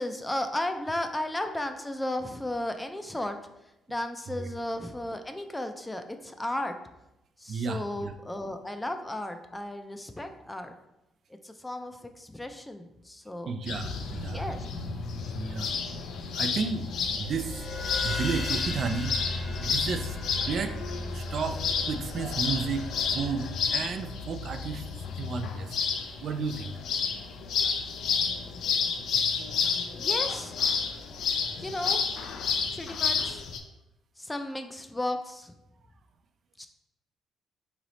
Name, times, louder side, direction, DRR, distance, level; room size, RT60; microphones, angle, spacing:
voice 1, 0.0-3.4 3.9-6.7 7.4-10.7 11.4-13.5 14.3-14.6 29.9-30.6 31.6-32.0 32.7-33.5 34.2-35.5 36.6-36.7, left 1 dB, 10° left, 7 dB, 0.4 m, -34 dB
voice 2, 7.5-8.1 13.5-14.5 15.3-15.7 16.3-16.9 17.2-17.7 18.0-20.8 21.1-22.9 23.1-24.9 25.2-25.8 26.2-26.7, right 5 dB, 60° right, 8 dB, 0.4 m, -33 dB
sound 1, 13.7-33.6, left 6 dB, 75° left, 0.5 m, -31 dB
sound 2, 17.1-24.1, left 1 dB, 45° left, 1.1 m, -37 dB
3.9 x 3.1 x 4.0 m, 0.90 s
cardioid pair, 90°, 0 cm